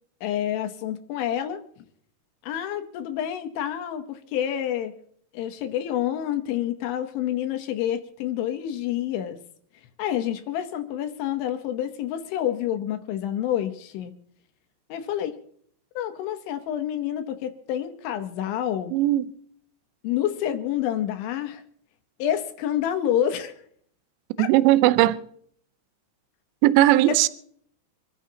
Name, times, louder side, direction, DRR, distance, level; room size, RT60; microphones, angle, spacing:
voice 1, 0.2-1.6 2.4-4.9 5.3-9.4 10.0-14.1 14.9-15.4 16.0-18.9 20.0-21.6 22.2-23.6 24.4-24.5, left 11 dB, 75° left, 3.2 m, -28 dB
voice 2, 18.9-19.2 24.4-25.2 26.6-27.3, right 15 dB, 80° right, 2.7 m, -18 dB
27.0 x 13.5 x 2.8 m
omnidirectional pair, 5.9 m